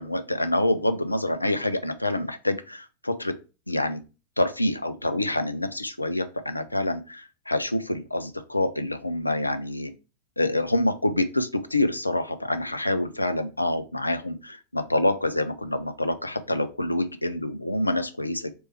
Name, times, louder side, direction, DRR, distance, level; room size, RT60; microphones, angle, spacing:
voice 1, 0.0-3.4 3.7-4.0 4.4-9.9 10.4-18.5, left 1 dB, 85° left, 10 dB, 0.4 m, -26 dB
3.2 x 3.1 x 4.4 m, 0.31 s
figure-of-eight pair, 90°, 0 cm